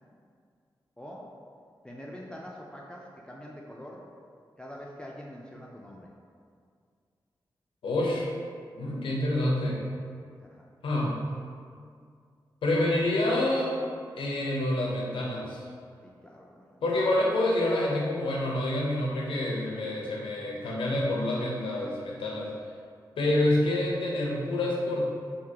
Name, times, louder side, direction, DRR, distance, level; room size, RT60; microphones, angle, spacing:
voice 1, 1.0-1.3 1.8-4.1 4.6-6.1 10.5-10.6 16.0-16.8, equal, 10° left, -3 dB, 0.4 m, -44 dB
voice 2, 7.8-8.3 8.7-9.8 10.8-11.2 12.6-13.7 14.2-15.7 16.8-22.5 23.2-25.0, left 1 dB, 85° left, -3 dB, 0.6 m, -27 dB
3.7 x 2.7 x 2.8 m, 2.2 s
cardioid pair, 50°, 9 cm